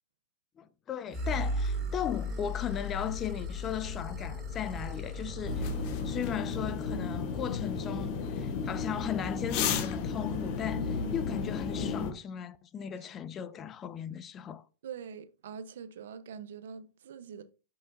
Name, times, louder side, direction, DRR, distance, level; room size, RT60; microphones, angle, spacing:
voice 1, 0.6-5.7 6.0-14.6, left 8 dB, 25° left, 0.5 m, -37 dB
sound 1, 1.1-6.3, left 1 dB, 20° right, 2.7 m, -36 dB
sound 2, 5.5-12.1, left 5 dB, 45° left, 0.9 m, -33 dB
voice 2, 14.8-17.4, right 7 dB, 75° right, 0.7 m, -44 dB
6.6 x 5.6 x 2.6 m
hypercardioid pair, 125°, 0 cm